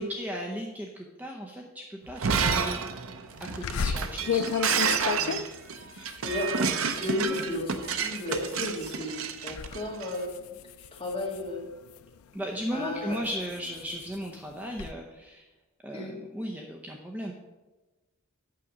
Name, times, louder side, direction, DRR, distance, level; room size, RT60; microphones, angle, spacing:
voice 1, 0.0-2.8 3.4-4.4 12.3-15.5 15.8-17.3, equal, 5° right, 0 dB, 0.6 m, -36 dB
Shatter, 2.1-10.1, right 6 dB, 70° right, 0.7 m, -30 dB
sound 1, 3.6-9.0 9.4-9.8 10.1-12.2 12.7-14.9, left 7 dB, 80° left, 0.4 m, -34 dB
voice 2, 4.7-5.4 5.9-10.3 10.9-11.7 12.7-13.2 15.9-16.1, left 1 dB, 25° left, -3 dB, 2.0 m, -34 dB
8.6 x 6.6 x 5.0 m, 1.1 s
head